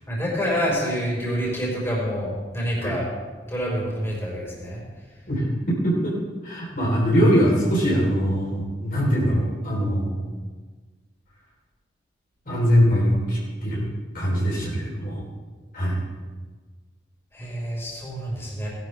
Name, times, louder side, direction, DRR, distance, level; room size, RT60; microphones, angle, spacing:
voice 1, 0.1-3.0 3.5-4.8 17.3-18.7, equal, 15° left, -5 dB, 4.8 m, -27 dB
voice 2, 6.4-10.2 12.5-13.9 14.1-15.2 15.7-16.0, equal, 50° left, -4 dB, 3.9 m, -22 dB
18.5 x 12.0 x 3.4 m, 1.4 s
head